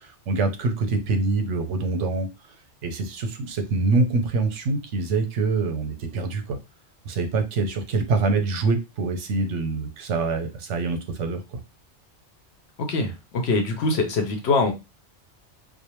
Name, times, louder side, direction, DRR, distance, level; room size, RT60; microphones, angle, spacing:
voice 1, 0.0-2.3 2.8-6.6 7.1-11.6, right 3 dB, 85° right, 6 dB, 1.0 m, -25 dB
voice 2, 12.8-14.7, left 3 dB, 70° left, 4 dB, 0.9 m, -23 dB
2.4 x 2.1 x 3.0 m, 0.25 s
omnidirectional pair, 1.2 m